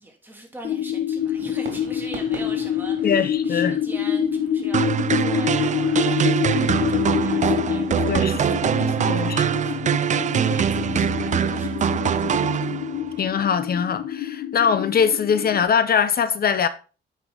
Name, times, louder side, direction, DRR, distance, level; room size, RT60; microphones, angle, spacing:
voice 1, 0.0-12.5, right 1 dB, 10° right, 2.8 m, -42 dB
sound 1, 0.6-15.6, left 9 dB, 75° left, 1.1 m, -27 dB
Fireworks, 1.2-6.2, right 5 dB, 65° right, 2.4 m, -43 dB
voice 2, 3.0-3.7 8.1-8.6 9.1-9.4 13.2-16.7, left 7 dB, 50° left, 0.8 m, -22 dB
sound 2, 4.7-13.1, right 8 dB, 40° right, 0.4 m, -23 dB
9.0 x 5.6 x 3.9 m
cardioid pair, 90°, 20 cm